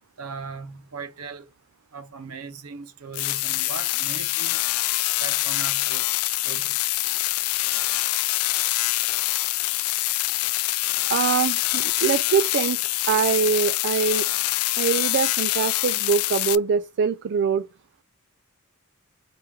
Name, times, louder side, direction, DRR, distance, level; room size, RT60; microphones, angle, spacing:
voice 1, 0.2-1.4 1.9-4.6 5.2-6.0 6.4-6.7, right 4 dB, 80° right, 0.7 m, -38 dB
sound 1, 3.1-16.5, left 18 dB, 75° left, 0.3 m, -25 dB
voice 2, 11.1-12.8 13.1-14.3 14.8-17.7, right 6 dB, 55° right, 0.3 m, -23 dB
4.5 x 3.4 x 3.1 m
head